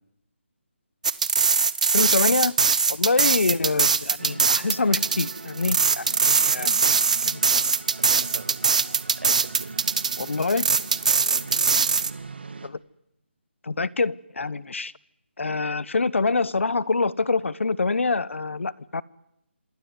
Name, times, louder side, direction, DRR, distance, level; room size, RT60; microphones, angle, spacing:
sound 1, 1.0-12.1, right 5 dB, 35° right, 0.9 m, -22 dB
voice 1, 1.9-2.5 2.9-6.0 6.4-6.7 7.3-7.4 10.2-10.7 12.6-12.8 13.6-14.9 15.4-19.0, left 3 dB, 90° left, 20 dB, 1.1 m, -25 dB
sound 2, 4.2-12.7, right 4 dB, 55° right, 2.1 m, -41 dB
voice 2, 6.3-6.8 7.4-7.7 8.0-8.8 9.2-9.7 11.3-11.8, right 3 dB, 90° right, 9 dB, 6.0 m, -40 dB
26.5 x 20.5 x 9.7 m, 0.84 s
hypercardioid pair, 180°, 7 cm